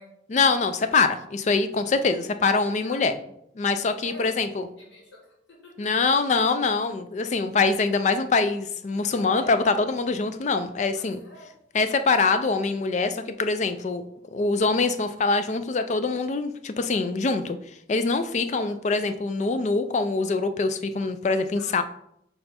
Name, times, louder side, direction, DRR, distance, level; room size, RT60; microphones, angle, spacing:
voice 1, 0.3-3.1 3.6-4.6 5.8-11.2 11.7-14.0 14.3-17.6 17.9-21.8, left 4 dB, 40° left, 10 dB, 0.3 m, -24 dB
voice 2, 4.0-5.3 5.6-5.7 9.2-9.5 10.9-11.5 18.5-18.8 21.6-21.8, left 1 dB, 75° left, -3 dB, 1.7 m, -46 dB
5.4 x 4.4 x 4.2 m, 0.76 s
head